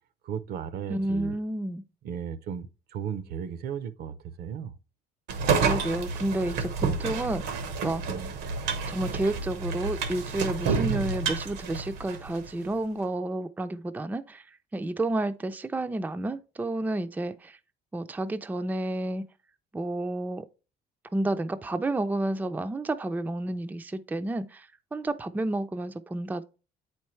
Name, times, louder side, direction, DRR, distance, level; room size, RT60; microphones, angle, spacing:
voice 1, 0.2-1.4 2.0-4.7, right 8 dB, 70° right, 0.7 m, -35 dB
voice 2, 0.9-1.8 5.6-7.4 7.8-8.0 8.9-14.4 14.7-17.6 17.9-19.2 19.7-20.5 21.1-26.4, right 2 dB, 10° right, 0.4 m, -30 dB
sound 1, 5.3-12.5, right 5 dB, 90° right, 1.1 m, -29 dB
8.0 x 4.5 x 3.1 m
cardioid pair, 110°, 17 cm